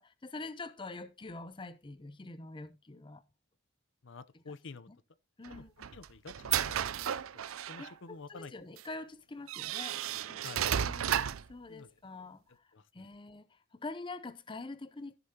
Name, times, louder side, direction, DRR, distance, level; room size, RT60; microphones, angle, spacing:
voice 1, 0.0-3.2 4.3-4.5 4.9-5.0 5.4-5.9 7.8-10.0 10.3-10.4 10.7-11.2 11.5-15.1, left 3 dB, 25° left, 0.6 m, -45 dB
voice 2, 4.0-4.9 5.5-5.6 5.9-6.7 7.3-8.5 10.4-10.7 11.7-11.9 12.7-13.1, left 4 dB, 60° left, 0.7 m, -49 dB
sound 1, 5.4-7.9 8.8-8.9 9.5-11.5, right 9 dB, 80° right, 0.5 m, -33 dB
14.5 x 6.9 x 2.8 m
head